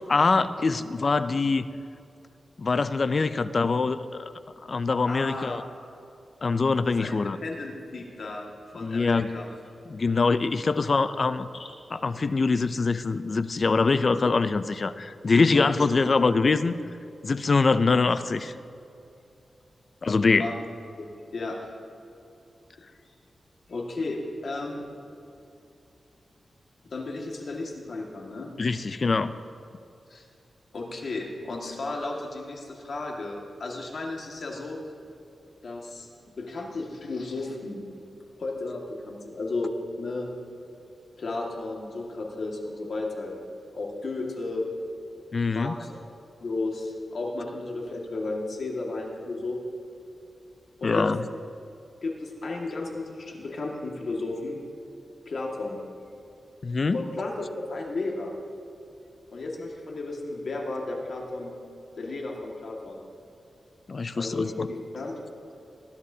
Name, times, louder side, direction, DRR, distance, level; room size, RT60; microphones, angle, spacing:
voice 1, 0.1-1.7 2.6-4.3 4.7-5.6 6.4-7.4 8.8-9.3 9.9-11.5 11.9-16.8 17.2-18.5 20.0-20.5 28.6-29.3 45.3-45.7 50.8-51.2 56.6-57.0 63.9-64.7, left 4 dB, 45° left, 13 dB, 0.4 m, -24 dB
voice 2, 5.1-5.6 6.9-8.5 8.7-9.5 11.5-11.7 15.5-15.9 20.4-20.6 20.9-21.6 23.7-24.8 26.9-28.5 30.1-30.2 30.7-34.8 35.6-36.1 36.4-37.9 38.4-40.3 41.2-43.4 43.7-44.7 45.5-46.0 46.4-49.6 50.8-51.1 52.0-54.6 55.3-55.8 56.9-58.3 59.3-61.6 62.0-63.0 64.2-65.1, left 2 dB, 65° left, -1 dB, 1.9 m, -33 dB
20.0 x 11.0 x 2.8 m, 2.6 s
wide cardioid pair, 110°, 0 cm